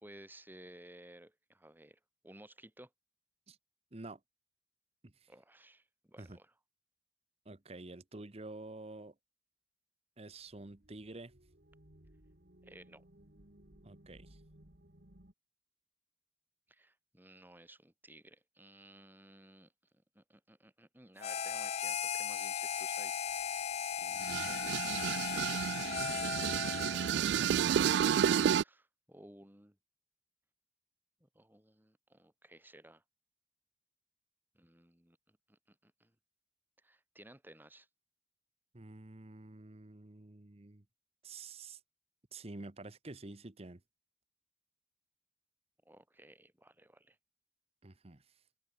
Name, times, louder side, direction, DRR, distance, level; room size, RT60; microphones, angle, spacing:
voice 1, 0.0-2.9 5.3-6.5 12.6-13.0 16.7-19.7 20.1-29.8 31.2-33.0 34.5-36.1 36.8-37.9 45.8-47.2, right 1 dB, 10° right, 2.7 m, -58 dB
voice 2, 7.4-9.1 10.2-11.3 13.8-14.4 38.7-40.8 41.2-41.8 42.3-43.8 47.8-48.2, right 2 dB, 35° right, 1.1 m, -49 dB
sound 1, 10.3-15.3, right 1 dB, 55° right, 2.8 m, -61 dB
Harmonica, 21.2-27.2, left 7 dB, 35° left, 0.4 m, -37 dB
metal mixing bowl spins edit, 24.2-28.6, right 8 dB, 70° right, 0.3 m, -31 dB
head